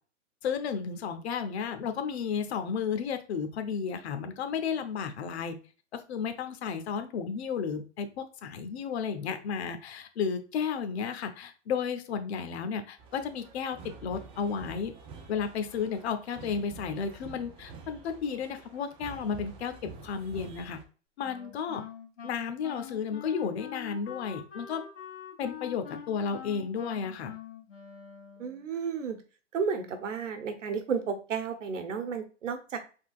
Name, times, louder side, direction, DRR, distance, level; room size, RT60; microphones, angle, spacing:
voice 1, 0.4-5.6 5.9-14.9 15.3-20.8 21.2-21.8 22.2-24.8 25.4-27.3, left 6 dB, 60° left, 8 dB, 1.0 m, -33 dB
sound 1, 13.0-20.8, right 4 dB, 15° right, 0.5 m, -48 dB
Wind instrument woodwind instrument, 21.2-28.7, left 8 dB, 85° left, 2.4 m, -45 dB
voice 2, 28.4-29.2 29.5-32.8, right 6 dB, 85° right, 6 dB, 1.2 m, -32 dB
4.6 x 3.8 x 2.4 m, 0.36 s
hypercardioid pair, 140°, 36 cm